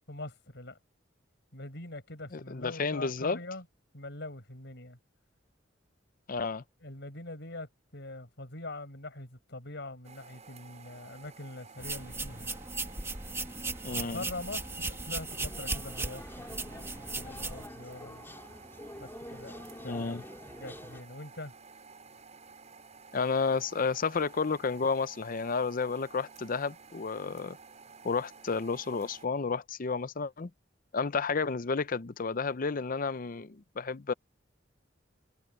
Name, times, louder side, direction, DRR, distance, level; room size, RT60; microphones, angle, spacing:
voice 1, 0.1-0.8 1.5-3.7 3.9-5.0 6.8-12.5 13.9-16.2 16.5-18.3 19.0-21.5, left 2 dB, 65° left, 6.1 m, -43 dB
voice 2, 2.3-3.4 6.3-6.6 13.8-14.3 19.8-20.2 23.1-27.6 28.0-30.5 30.9-34.1, left 4 dB, 45° left, 0.6 m, -31 dB
sound 1, 10.0-29.3, right 4 dB, 40° right, 6.6 m, -53 dB
sound 2, 11.8-17.7, right 3 dB, 15° right, 1.7 m, -37 dB
sound 3, 15.3-21.0, left 1 dB, 10° left, 3.3 m, -47 dB
head